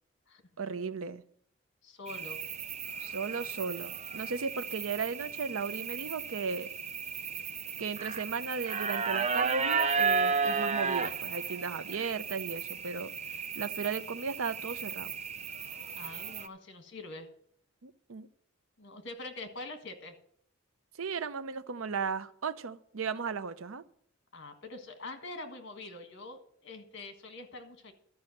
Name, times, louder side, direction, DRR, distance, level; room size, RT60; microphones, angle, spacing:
voice 1, 0.6-1.2 3.0-6.7 7.8-13.1 13.6-15.1 17.8-18.3 21.0-23.8, right 5 dB, 80° right, 13 dB, 0.7 m, -36 dB
voice 2, 1.8-2.4 16.0-17.3 18.8-20.1 24.3-27.9, left 2 dB, 60° left, 7 dB, 1.5 m, -44 dB
sound 1, 2.1-16.5, right 5 dB, 35° right, 0.6 m, -34 dB
12.5 x 5.5 x 7.7 m, 0.65 s
head